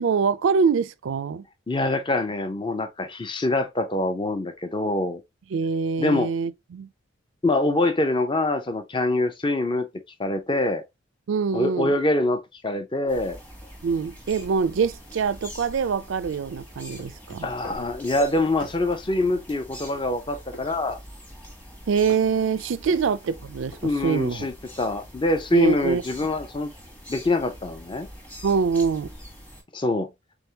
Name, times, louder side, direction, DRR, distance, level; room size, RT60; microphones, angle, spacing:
voice 1, 0.0-1.4 5.5-6.9 11.3-11.9 13.8-17.5 21.9-24.5 25.5-26.0 28.4-29.1, right 5 dB, 70° right, 0.4 m, -24 dB
voice 2, 1.7-5.2 6.0-6.3 7.4-9.9 10.2-10.8 11.5-13.4 17.4-21.0 22.9-23.0 23.8-26.7 27.1-28.1 29.7-30.1, left 2 dB, 25° left, 0.5 m, -24 dB
sound 1, 13.1-29.6, equal, 10° left, 1.0 m, -44 dB
sound 2, 17.0-17.8 18.6-19.4 20.5-21.0 22.1-22.3 23.4-24.2, left 1 dB, 80° left, 1.5 m, -43 dB
3.7 x 3.5 x 2.8 m
head